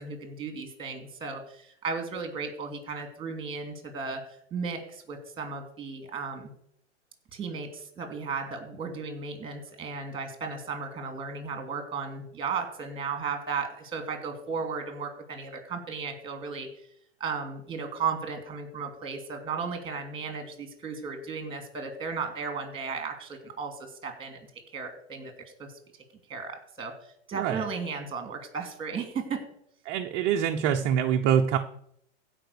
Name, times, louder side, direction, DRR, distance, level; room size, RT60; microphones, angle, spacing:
voice 1, 0.0-6.5 7.3-16.7 17.2-24.5 24.7-25.7 26.3-29.4, right 5 dB, 15° right, 6 dB, 2.7 m, -35 dB
voice 2, 29.9-31.6, right 8 dB, 30° right, 4 dB, 0.8 m, -25 dB
15.5 x 5.2 x 6.7 m, 0.69 s
hypercardioid pair, 135°, 37 cm